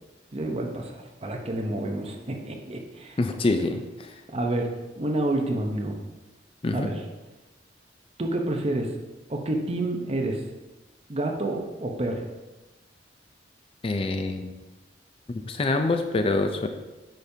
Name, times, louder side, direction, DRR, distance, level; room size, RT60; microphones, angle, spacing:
voice 1, 0.3-3.2 4.3-4.7 5.0-6.0 6.7-6.9 8.2-8.9 9.3-10.4 11.1-12.2, right 1 dB, 35° right, 2 dB, 0.8 m, -28 dB
voice 2, 3.2-4.1 6.6-6.9 13.8-14.5 15.3-16.7, left 2 dB, 30° left, 6 dB, 0.4 m, -26 dB
9.0 x 5.1 x 2.7 m, 1.1 s
head